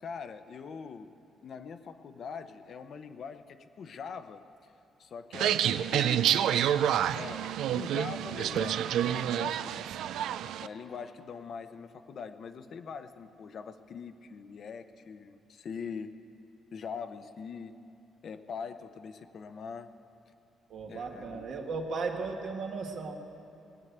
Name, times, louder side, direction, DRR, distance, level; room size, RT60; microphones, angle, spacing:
voice 1, 0.0-1.1 1.4-4.7 5.0-6.7 7.1-9.8 10.6-16.1 16.7-17.8 18.2-19.9 20.9-21.4, left 6 dB, 60° left, 9 dB, 0.7 m, -42 dB
sound 1, 5.3-10.7, right 10 dB, 80° right, 0.3 m, -28 dB
voice 2, 20.7-23.1, right 4 dB, 65° right, 2 dB, 1.6 m, -36 dB
19.5 x 8.0 x 8.2 m, 2.7 s
cardioid pair, 90°, 0 cm